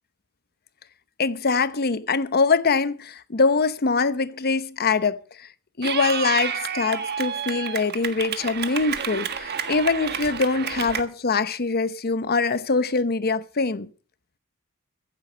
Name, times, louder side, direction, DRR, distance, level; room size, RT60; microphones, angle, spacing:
voice 1, 1.2-5.5 5.8-13.9, left 4 dB, 45° left, 0.8 m, -23 dB
Clapping / Cheering, 5.8-11.0, right 7 dB, 45° right, 1.5 m, -30 dB
15.5 x 8.4 x 6.4 m
head